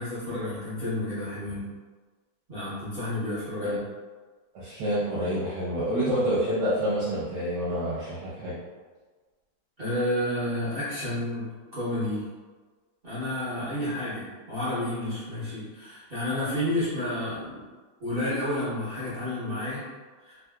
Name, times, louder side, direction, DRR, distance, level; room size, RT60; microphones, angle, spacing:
voice 1, 0.0-1.6 2.5-3.8 9.8-12.2 13.0-17.6 18.0-19.8 20.2-20.4, left 1 dB, 40° right, -12 dB, 0.8 m, -30 dB
voice 2, 4.5-8.6, equal, 65° right, -9 dB, 1.2 m, -28 dB
3.4 x 2.7 x 2.3 m, 1.4 s
omnidirectional pair, 2.2 m